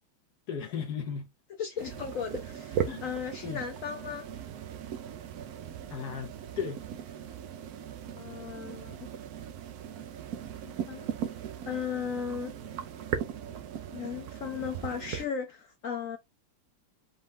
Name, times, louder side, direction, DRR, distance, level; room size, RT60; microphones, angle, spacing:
voice 1, 0.5-1.3 2.9-3.0 3.4-3.6 5.9-6.8, left 7 dB, 60° left, 1.2 m, -35 dB
voice 2, 1.6-4.3 8.1-9.1 10.6-11.1 11.7-12.5 13.9-16.2, left 7 dB, 90° left, 0.7 m, -36 dB
sound 1, 1.8-15.3, right 9 dB, 65° right, 0.9 m, -38 dB
5.4 x 2.3 x 3.5 m
omnidirectional pair, 2.1 m